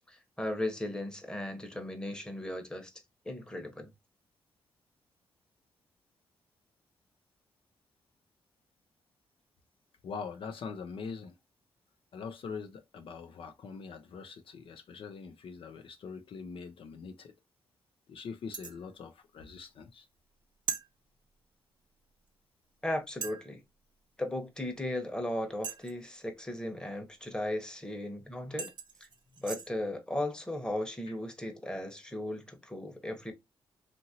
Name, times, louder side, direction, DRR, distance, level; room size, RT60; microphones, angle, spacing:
voice 1, 0.1-2.9 3.2-3.9 22.8-23.6 24.2-28.7 29.4-33.3, left 1 dB, 10° left, 0.9 m, -36 dB
voice 2, 10.0-11.4 12.1-17.3 18.1-20.1 31.1-31.2, left 5 dB, 65° left, 0.5 m, -43 dB
sound 1, 18.5-18.8 20.7-20.9 22.3-22.4 23.2-23.5 25.6-26.1 28.0-28.1 28.6-29.7, right 6 dB, 55° right, 0.6 m, -39 dB
2.8 x 2.5 x 2.7 m
cardioid pair, 60°, 10 cm